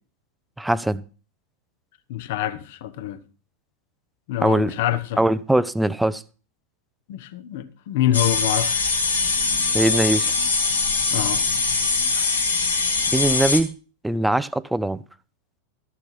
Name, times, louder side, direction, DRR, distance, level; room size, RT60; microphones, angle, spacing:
voice 1, 0.6-1.0 4.4-4.7 5.2-6.2 9.7-10.3 13.1-13.7 14.0-15.0, right 1 dB, 5° right, 0.5 m, -21 dB
voice 2, 2.1-3.2 4.3-5.2 7.1-8.8 11.1-11.4, left 12 dB, 50° left, 1.0 m, -26 dB
sound 1, 8.1-13.6, left 4 dB, 75° left, 2.0 m, -22 dB
13.0 x 6.7 x 5.8 m
figure-of-eight pair, 90°, 0 cm